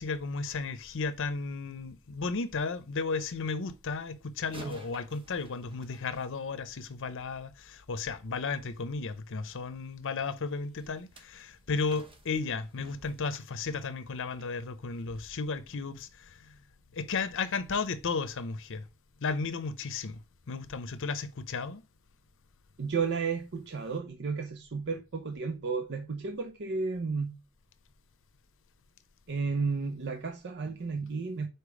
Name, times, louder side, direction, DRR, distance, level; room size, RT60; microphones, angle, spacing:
voice 1, 0.0-16.6 16.9-18.9 19.2-20.2 20.5-21.8, left 4 dB, 60° left, 0.7 m, -34 dB
sound 1, 4.4-7.0 10.8-14.5 15.0-15.2 15.7-15.8, right 3 dB, 25° right, 0.9 m, -52 dB
voice 2, 22.8-27.4 29.3-31.5, right 5 dB, 55° right, 0.6 m, -33 dB
5.0 x 4.6 x 4.8 m
head